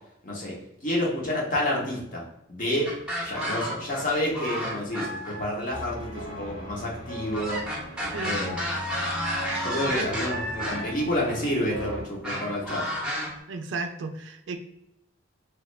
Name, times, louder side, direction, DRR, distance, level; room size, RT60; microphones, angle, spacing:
voice 1, 0.2-0.5 0.8-2.2 2.5-2.9 3.2-7.6 8.2-8.6 9.5-12.8, left 1 dB, 40° left, -3 dB, 0.7 m, -29 dB
sound 1, 2.9-4.0 4.3-5.5 7.3-10.9 12.2-13.3, equal, 5° right, 0.6 m, -31 dB
sound 2, 5.7-12.0, equal, 70° left, 1.4 m, -38 dB
voice 2, 8.1-8.6 9.9-10.1 13.5-14.6, right 3 dB, 65° right, 6 dB, 0.3 m, -34 dB
3.0 x 2.3 x 3.0 m, 0.82 s
head